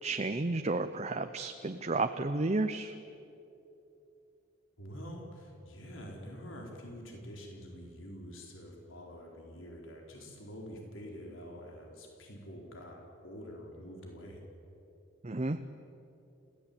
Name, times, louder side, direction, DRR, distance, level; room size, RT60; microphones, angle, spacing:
voice 1, 0.0-2.9 15.2-15.6, right 2 dB, 35° right, 8 dB, 0.7 m, -32 dB
voice 2, 4.8-14.4, equal, 75° left, 0 dB, 4.4 m, -46 dB
30.0 x 16.5 x 8.8 m, 2.8 s
head